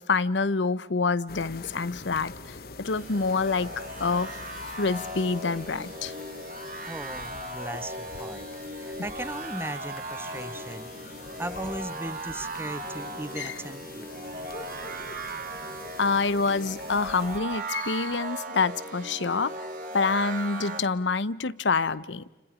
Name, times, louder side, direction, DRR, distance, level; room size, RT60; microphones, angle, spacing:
voice 1, 0.0-3.7 4.0-4.4 4.8-6.1 13.4-13.5 16.0-19.7 19.9-22.2, left 4 dB, 80° left, 0.8 m, -27 dB
sound 1, 1.3-17.4, left 3 dB, 55° left, 1.1 m, -45 dB
sound 2, 2.8-20.8, right 2 dB, 45° right, 2.6 m, -38 dB
voice 2, 6.9-14.1 17.3-17.4, right 1 dB, 15° right, 0.8 m, -38 dB
30.0 x 29.5 x 5.1 m
head